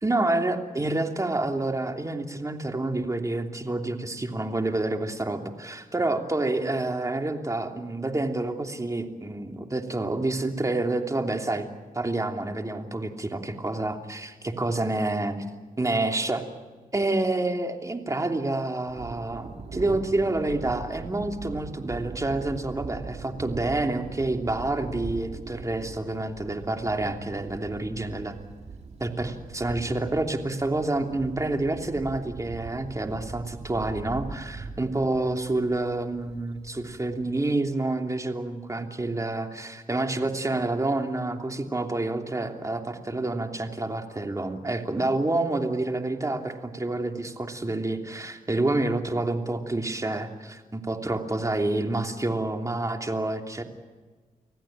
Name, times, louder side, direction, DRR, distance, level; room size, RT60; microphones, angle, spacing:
voice 1, 0.0-11.7 11.9-15.4 15.8-16.4 16.9-28.4 29.0-53.6, right 2 dB, 20° right, 4 dB, 3.0 m, -28 dB
Thunder, 18.9-37.3, right 4 dB, 50° right, 2.4 m, -41 dB
26.0 x 16.5 x 9.0 m, 1.4 s
cardioid pair, 60°, 14 cm